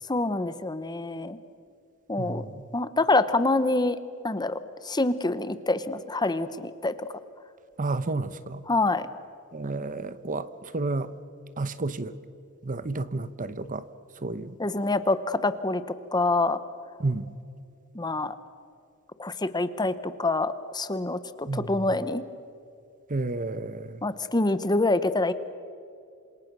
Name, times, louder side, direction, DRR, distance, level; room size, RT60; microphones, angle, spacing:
voice 1, 0.1-1.4 2.1-2.4 2.7-4.0 4.2-4.6 4.8-6.9 8.7-9.1 14.6-15.8 16.1-16.6 17.9-18.4 19.2-22.2 24.0-25.3, left 2 dB, 20° left, 13 dB, 0.9 m, -26 dB
voice 2, 2.2-2.6 7.8-8.6 9.5-11.1 11.6-12.1 12.6-13.9 14.2-14.6 17.0-17.3 21.5-21.8 23.1-24.0, right 2 dB, 35° right, 14 dB, 0.9 m, -31 dB
27.5 x 26.5 x 6.2 m, 2.4 s
head